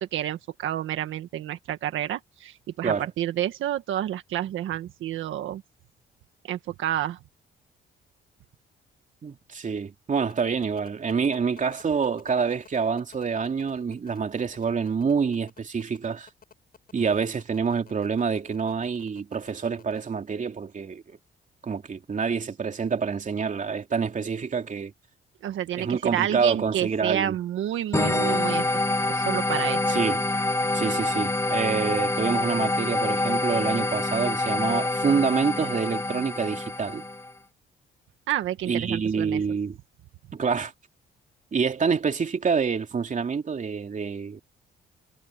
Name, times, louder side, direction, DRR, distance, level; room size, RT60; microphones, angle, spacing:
voice 1, 0.0-5.6 6.5-7.2 25.4-28.7 29.1-29.8 38.3-39.4, right 11 dB, 80° right, 1.7 m, -29 dB
voice 2, 9.2-16.3 16.9-21.2 21.6-24.9 25.8-27.4 29.9-30.2 30.7-37.0 38.7-39.8 40.3-40.7 41.5-44.4, right 5 dB, 40° right, 3.0 m, -27 dB
sound 1, 10.3-20.0, left 6 dB, 50° left, 7.8 m, -51 dB
sound 2, 27.9-37.3, left 2 dB, 15° left, 0.8 m, -26 dB
cardioid pair, 90°, 20 cm